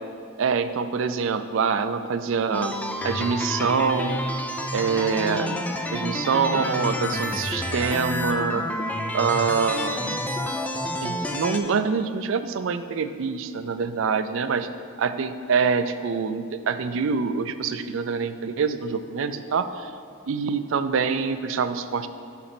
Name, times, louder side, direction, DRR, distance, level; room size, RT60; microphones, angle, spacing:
voice 1, 0.4-2.8 3.0-4.2 4.7-5.6 5.9-8.7 9.1-10.2 11.0-14.7 15.0-19.9 20.3-22.1, right 5 dB, 65° right, 10 dB, 0.4 m, -25 dB
sound 1, 2.5-11.6, left 1 dB, 5° left, 0.3 m, -29 dB
6.5 x 5.2 x 6.0 m, 2.3 s
head